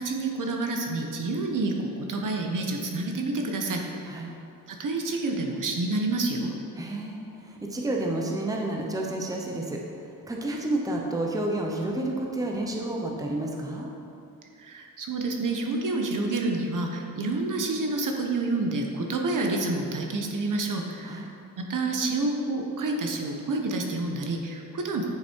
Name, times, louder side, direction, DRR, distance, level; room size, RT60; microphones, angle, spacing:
voice 1, 0.0-4.1 4.7-6.6 14.6-21.3 21.6-25.0, right 2 dB, 60° right, 2 dB, 1.1 m, -28 dB
voice 2, 6.7-13.9 21.0-21.3, right 1 dB, 10° right, -1 dB, 0.8 m, -30 dB
9.1 x 7.0 x 4.6 m, 2.6 s
wide cardioid pair, 160°, 35 cm